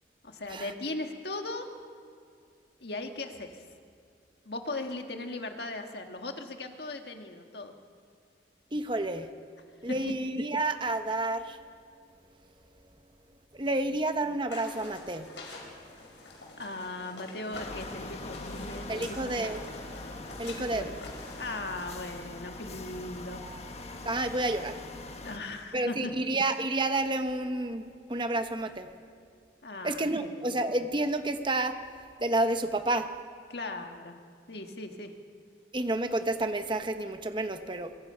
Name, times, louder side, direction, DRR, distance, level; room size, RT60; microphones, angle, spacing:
voice 1, 0.2-1.7 2.8-3.6 4.5-7.7 9.9-10.1 16.6-19.3 20.5-20.9 21.4-23.4 25.2-26.1 29.6-30.4 33.5-34.2 34.5-35.1, left 2 dB, 65° left, 4 dB, 1.8 m, -38 dB
voice 2, 8.7-9.3 9.8-11.6 13.6-15.3 18.9-19.6 20.4-20.9 24.0-24.7 25.7-27.8 28.1-28.9 29.8-31.8 32.2-33.1 35.7-37.9, right 2 dB, 25° right, 8 dB, 1.0 m, -30 dB
sound 1, 14.5-21.9, left 2 dB, 85° left, 5.8 m, -46 dB
sound 2, 17.5-25.4, left 2 dB, 35° left, 1.5 m, -42 dB
23.5 x 22.0 x 5.7 m, 2.3 s
head